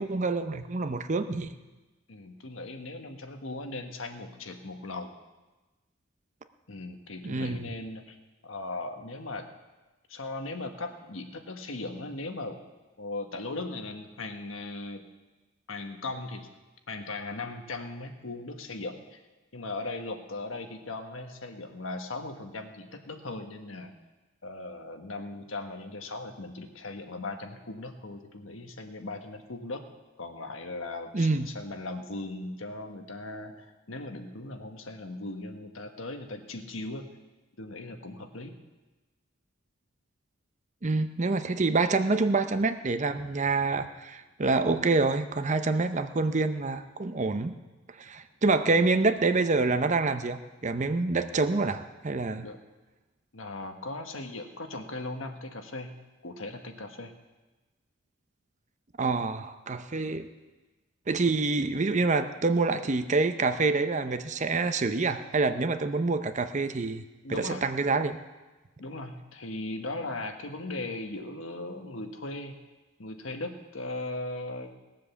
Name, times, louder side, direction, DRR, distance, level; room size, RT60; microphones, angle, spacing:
voice 1, 0.0-1.5 7.2-7.7 31.1-31.5 40.8-47.5 47.9-52.5 59.0-60.3 61.1-67.0 67.3-68.2, right 3 dB, 35° right, 9 dB, 0.7 m, -27 dB
voice 2, 2.1-5.1 6.7-8.2 8.4-9.5 10.1-12.6 13.0-15.0 15.7-16.5 16.9-19.2 19.5-23.9 24.4-29.8 30.2-37.0 37.6-38.6 48.7-48.9 52.4-52.6 53.3-56.0 56.2-57.1 67.2-67.7 68.8-72.6 73.0-74.7, left 2 dB, 75° left, 5 dB, 1.3 m, -38 dB
19.0 x 7.5 x 7.0 m, 1.2 s
head